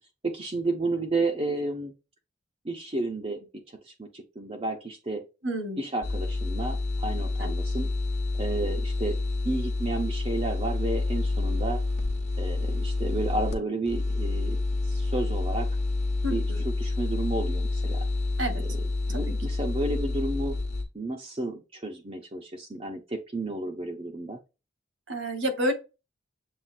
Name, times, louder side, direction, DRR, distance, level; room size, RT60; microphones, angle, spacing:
voice 1, 0.2-1.9 2.6-3.5 3.9-5.2 5.8-7.9 8.4-9.2 9.4-11.8 12.4-15.7 16.3-18.0 18.5-18.8 19.1-20.6 20.9-24.4, right 2 dB, 30° right, 0.7 m, -32 dB
voice 2, 5.4-5.8 7.4-7.5 16.2-16.6 18.4-18.6 25.1-25.7, equal, 75° right, 1.4 m, -29 dB
sound 1, 6.0-13.6 13.9-20.8, left 2 dB, 35° left, 1.0 m, -28 dB
7.3 x 2.5 x 2.5 m
head